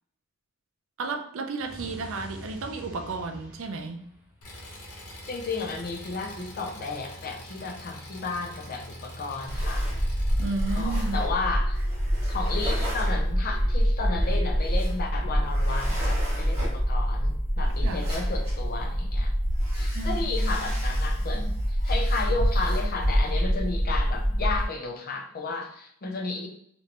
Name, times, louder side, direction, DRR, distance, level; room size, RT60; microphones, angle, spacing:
voice 1, 1.0-4.1 10.4-11.2 17.8-18.1 19.9-20.6, right 3 dB, 60° right, 5 dB, 0.4 m, -33 dB
sound 1, 1.6-4.7, left 1 dB, 5° right, 0.6 m, -45 dB
Engine, 4.4-10.8, equal, 85° left, 0.9 m, -44 dB
voice 2, 5.3-9.9 10.7-11.8 12.3-19.3 19.7-26.5, left 3 dB, 40° left, 3 dB, 0.5 m, -33 dB
sound 2, 9.5-24.6, equal, 30° right, 1.3 m, -26 dB
3.2 x 2.5 x 2.9 m, 0.69 s
head